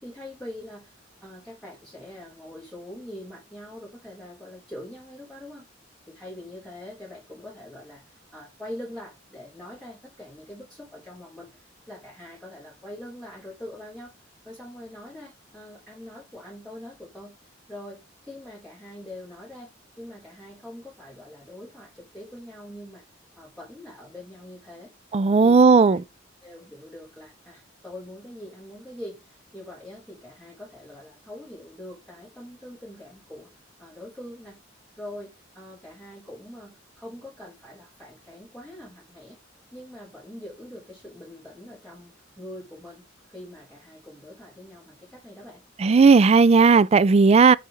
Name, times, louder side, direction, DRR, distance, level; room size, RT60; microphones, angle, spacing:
voice 1, 0.0-5.7 6.1-14.1 14.4-19.7 20.0-23.0 23.4-24.9 25.4-26.0 26.4-33.5 33.8-34.6 35.0-39.4 39.7-45.6, left 1 dB, ahead, 3.8 m, -43 dB
voice 2, 25.1-26.0 45.8-47.5, right 4 dB, 35° right, 0.3 m, -15 dB
8.3 x 4.1 x 5.0 m
head